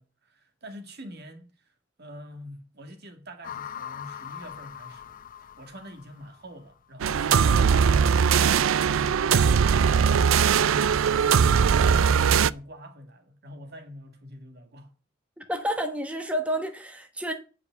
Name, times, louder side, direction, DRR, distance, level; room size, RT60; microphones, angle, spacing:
voice 1, 0.0-8.5 8.8-15.0, equal, 55° right, 1.9 m, -45 dB
sound 1, 3.4-6.7, left 9 dB, 45° left, 0.6 m, -41 dB
sound 2, 7.0-12.5, right 7 dB, 75° right, 0.4 m, -20 dB
voice 2, 15.4-17.3, equal, 5° right, 1.1 m, -30 dB
9.8 x 5.2 x 8.1 m
head